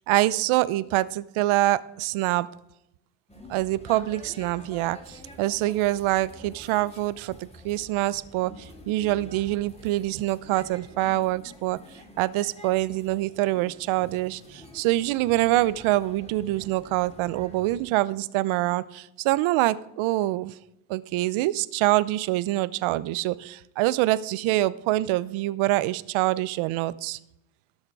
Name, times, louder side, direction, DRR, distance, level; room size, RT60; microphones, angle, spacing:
voice 1, 0.0-2.5 3.5-11.8 12.2-20.5 20.9-27.2, right 16 dB, 75° right, 18 dB, 0.7 m, -25 dB
sound 1, 3.3-17.9, left 1 dB, 15° left, 2.5 m, -48 dB
18.5 x 6.5 x 4.7 m, 0.83 s
cardioid pair, 110°, 49 cm